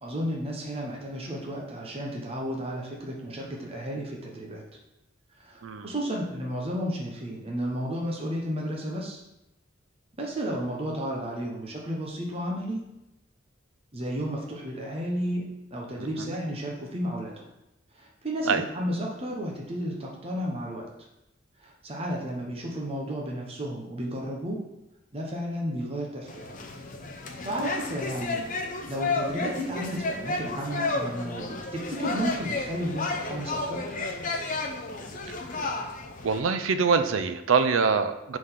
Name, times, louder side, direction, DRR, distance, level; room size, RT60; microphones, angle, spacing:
voice 1, 0.0-4.6 5.4-9.2 10.2-12.8 13.9-17.5 18.0-20.9 21.6-24.6 25.1-26.6 27.4-28.5 28.9-33.8, equal, 30° right, -2 dB, 0.9 m, -33 dB
voice 2, 16.0-16.4 18.5-18.6 36.2-38.4, right 5 dB, 85° right, 10 dB, 0.5 m, -25 dB
sound 1, 26.3-36.4, left 3 dB, 40° left, 0.7 m, -32 dB
4.8 x 3.9 x 5.6 m, 0.88 s
head